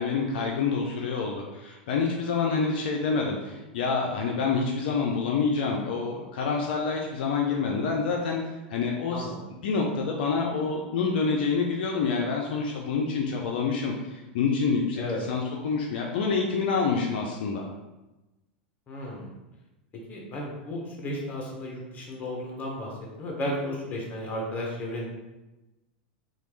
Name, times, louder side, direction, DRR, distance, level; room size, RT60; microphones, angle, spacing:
voice 1, 0.0-8.4 8.7-9.3 9.6-17.6, left 5 dB, 70° left, 0 dB, 0.4 m, -27 dB
voice 2, 9.1-9.4 15.0-15.2 18.9-19.3 19.9-22.9 23.2-25.1, left 1 dB, 30° left, -1 dB, 0.9 m, -34 dB
3.0 x 2.3 x 3.1 m, 1.0 s
hypercardioid pair, 105°, 5 cm